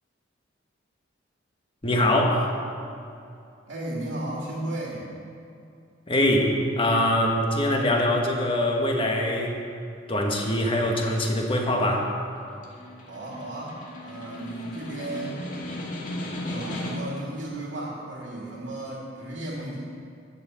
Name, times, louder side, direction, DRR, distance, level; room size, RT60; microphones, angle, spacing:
voice 1, 1.8-2.5 6.1-9.6 10.1-12.1, left 1 dB, 30° left, 1 dB, 1.5 m, -23 dB
voice 2, 3.7-5.1 13.1-15.4 16.4-19.8, right 1 dB, 75° right, -3 dB, 2.2 m, -34 dB
Snare drum, 12.4-17.3, left 1 dB, 45° left, 2.0 m, -36 dB
12.5 x 6.9 x 7.6 m, 2.5 s
head